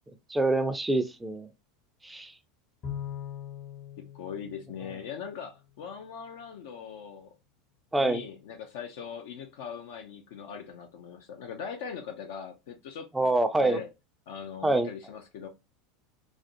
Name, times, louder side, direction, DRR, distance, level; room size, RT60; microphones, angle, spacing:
voice 1, 0.3-1.5 2.0-2.3 7.9-8.2 13.1-13.8 14.6-14.9, right 2 dB, 10° right, 0.4 m, -25 dB
Bowed string instrument, 2.8-5.5, left 9 dB, 45° left, 0.7 m, -41 dB
voice 2, 4.0-7.3 8.0-13.3 13.6-13.9 14.3-15.5, left 7 dB, 70° left, 0.4 m, -41 dB
2.4 x 2.1 x 2.5 m
hypercardioid pair, 85°, 0 cm